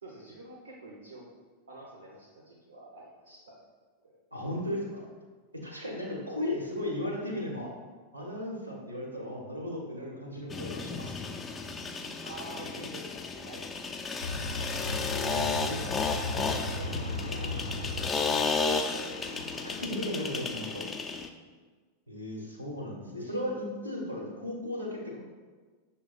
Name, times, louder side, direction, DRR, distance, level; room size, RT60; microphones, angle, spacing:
voice 1, 0.0-1.3 1.7-3.6 4.0-4.1 12.2-13.2 13.4-14.6 15.2-15.8 16.2-17.6 18.1-18.6 23.2-23.4, right 2 dB, 70° right, -4 dB, 0.6 m, -47 dB
voice 2, 4.3-5.1 5.6-7.7 8.1-11.2 15.1-15.8 19.6-20.8 22.1-25.2, left 1 dB, 85° right, -1 dB, 1.0 m, -36 dB
sound 1, 10.5-21.3, left 4 dB, 15° left, 0.3 m, -33 dB
sound 2, 14.2-19.9, left 2 dB, 75° left, 0.4 m, -37 dB
6.3 x 2.2 x 3.9 m, 1.4 s
figure-of-eight pair, 90°, 0 cm